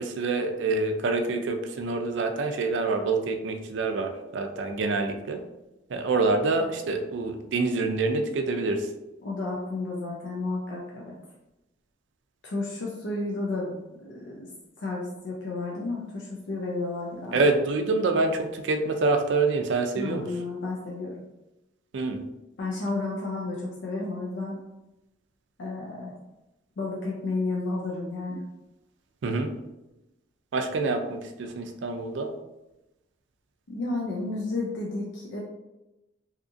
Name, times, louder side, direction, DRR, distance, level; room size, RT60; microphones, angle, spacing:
voice 1, 0.0-5.4 5.9-8.9 17.3-20.2 21.9-22.2 29.2-29.5 30.5-32.3, right 3 dB, 80° right, 6 dB, 0.4 m, -26 dB
voice 2, 9.2-11.1 12.4-14.5 14.8-17.5 19.9-21.2 22.6-24.6 25.6-26.1 26.8-28.4 33.7-35.4, left 3 dB, 80° left, -3 dB, 0.5 m, -32 dB
2.8 x 2.4 x 2.5 m, 0.97 s
head